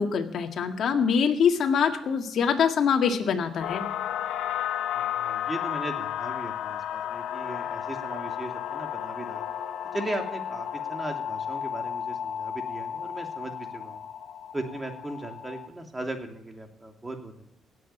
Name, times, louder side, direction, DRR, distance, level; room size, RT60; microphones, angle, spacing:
voice 1, 0.0-3.9, left 6 dB, 65° left, 4 dB, 1.9 m, -24 dB
sound 1, 3.6-15.7, left 9 dB, 85° left, 1.1 m, -33 dB
voice 2, 4.9-9.5 9.9-14.0 14.5-17.5, right 1 dB, 20° right, 4 dB, 2.8 m, -37 dB
18.0 x 7.9 x 9.2 m, 0.75 s
cardioid pair, 90°, 0 cm